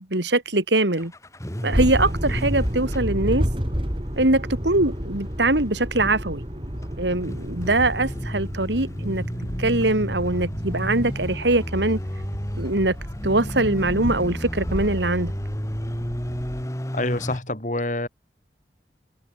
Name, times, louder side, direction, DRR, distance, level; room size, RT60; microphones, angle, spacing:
voice 1, 0.1-1.1 1.6-3.5 4.2-6.4 7.0-9.2 9.6-12.0 12.6-13.0 13.2-15.3, right 2 dB, 90° right, 3.4 m, -22 dB
sound 1, 1.0-17.4, equal, 15° left, 2.3 m, -33 dB
sound 2, 1.7-16.6, equal, 30° right, 4.6 m, -31 dB
voice 2, 16.9-18.1, left 1 dB, 45° left, 3.5 m, -27 dB
head